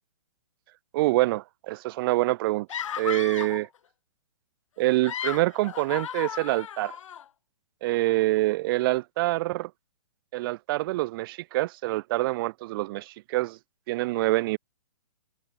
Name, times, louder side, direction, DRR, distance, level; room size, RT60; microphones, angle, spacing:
voice 1, 0.9-2.7 3.0-3.7 4.8-7.0 7.8-9.7 10.3-13.6 13.9-14.6, right 19 dB, 40° right, 3.8 m, -26 dB
sound 1, 2.7-3.7 4.8-7.2, left 9 dB, 65° left, 3.0 m, -35 dB
hypercardioid pair, 140°, 18 cm